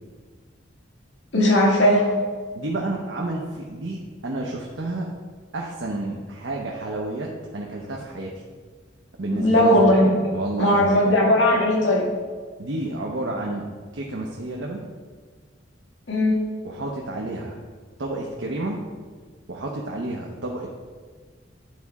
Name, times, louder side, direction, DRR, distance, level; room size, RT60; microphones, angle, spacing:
voice 1, 1.3-2.1 9.3-10.1 10.6-12.0 16.1-16.4, left 1 dB, 80° left, -4 dB, 2.2 m, -18 dB
voice 2, 2.5-5.1 5.5-8.3 9.2-9.8 10.3-11.1 12.6-13.7 13.9-14.9 16.6-17.6 18.0-18.9 19.5-20.7, right 2 dB, 75° right, -2 dB, 0.8 m, -30 dB
9.4 x 4.1 x 4.7 m, 1.5 s
head